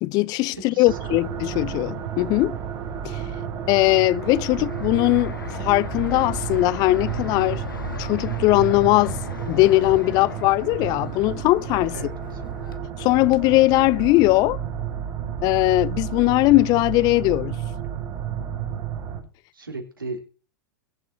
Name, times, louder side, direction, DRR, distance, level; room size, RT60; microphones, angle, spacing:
voice 1, 0.0-2.6 3.0-3.2 3.7-7.6 8.0-9.2 9.5-11.9 13.0-14.6 15.4-17.6, left 20 dB, 35° left, 0.4 m, -20 dB
voice 2, 0.5-1.2 11.9-12.4 19.5-20.2, right 3 dB, 80° right, 3.5 m, -36 dB
sound 1, 0.8-19.2, right 8 dB, 40° right, 3.0 m, -31 dB
Fixed-wing aircraft airplane, 4.1-12.8, left 5 dB, 75° left, 1.3 m, -39 dB
22.0 x 7.7 x 2.7 m
figure-of-eight pair, 95°, 11 cm